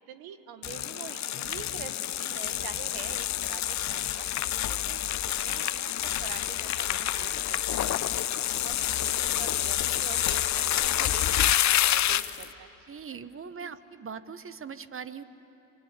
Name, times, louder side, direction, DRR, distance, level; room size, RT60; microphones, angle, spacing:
voice 1, 0.1-4.3 4.7-5.9 6.2-8.0 8.4-11.5 11.8-12.7 13.6-13.7, right 9 dB, 75° right, 10 dB, 1.6 m, -45 dB
sound 1, 0.6-12.5, left 12 dB, 50° left, 0.8 m, -28 dB
voice 2, 12.9-15.2, right 6 dB, 35° right, 13 dB, 1.3 m, -40 dB
25.5 x 25.0 x 9.0 m, 3.0 s
hypercardioid pair, 60°, 37 cm